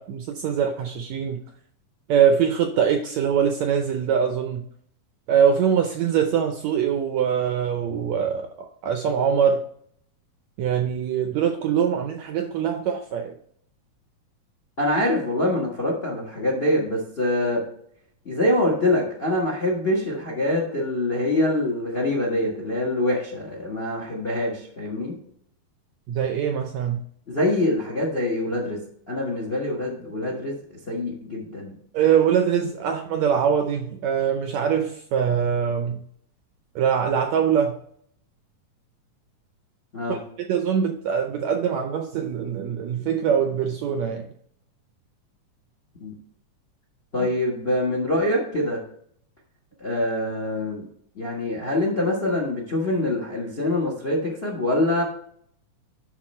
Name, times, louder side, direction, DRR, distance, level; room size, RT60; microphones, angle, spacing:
voice 1, 0.0-1.4 2.1-4.6 5.3-8.5 8.8-9.6 10.6-13.3 26.1-27.0 31.9-36.0 36.7-37.8 40.1-44.3 47.2-47.3, right 8 dB, 80° right, 1.6 m, -23 dB
voice 2, 14.8-17.6 18.2-25.1 27.3-28.8 29.1-31.7 39.9-40.2 46.0-46.1 47.1-48.8 49.8-50.9 51.1-55.0, left 1 dB, 55° left, 0.6 m, -24 dB
11.0 x 3.8 x 4.3 m
omnidirectional pair, 3.9 m